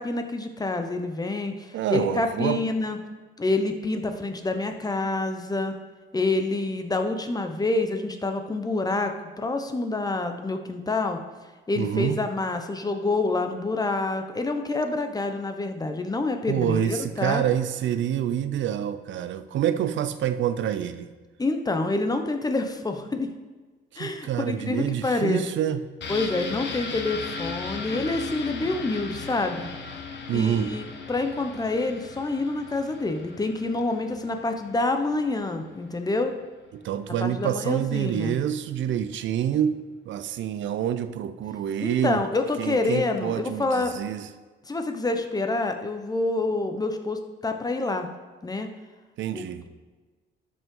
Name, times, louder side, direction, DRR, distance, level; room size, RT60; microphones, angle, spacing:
voice 1, 0.0-3.0 3.4-5.7 6.1-11.2 11.7-17.4 21.4-23.3 24.0-25.4 26.1-29.7 30.3-30.8 31.1-36.4 37.2-38.4 41.8-43.9 44.7-48.1 48.4-48.7 49.3-49.7, left 2 dB, 20° left, 6 dB, 0.9 m, -27 dB
voice 2, 1.7-2.6 11.7-12.2 16.5-21.1 23.9-25.8 30.3-30.7 36.7-42.2 42.6-44.3 49.2-49.6, right 10 dB, 70° right, 11 dB, 0.6 m, -27 dB
sound 1, 26.0-35.6 35.9-36.0, left 4 dB, 65° left, 1.2 m, -37 dB
12.5 x 5.6 x 3.8 m, 1.3 s
cardioid pair, 90°, 20 cm